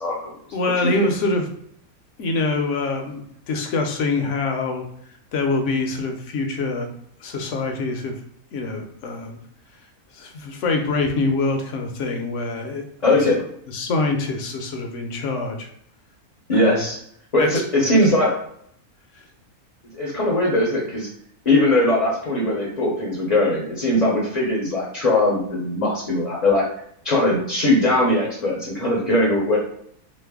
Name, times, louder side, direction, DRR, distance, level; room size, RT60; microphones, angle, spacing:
voice 1, 0.0-0.3 0.8-0.9 13.0-13.4 16.5-17.0 17.3-18.3 19.9-21.1 21.4-26.6 27.0-29.6, left 1 dB, 45° left, -4 dB, 0.5 m, -20 dB
voice 2, 0.5-1.5 2.2-4.9 5.3-6.9 7.2-8.1 8.5-9.4 10.1-12.8 13.7-15.7 16.5-16.8 17.4-17.5, left 3 dB, 65° left, 4 dB, 0.8 m, -25 dB
3.1 x 2.0 x 3.4 m, 0.68 s
omnidirectional pair, 1.5 m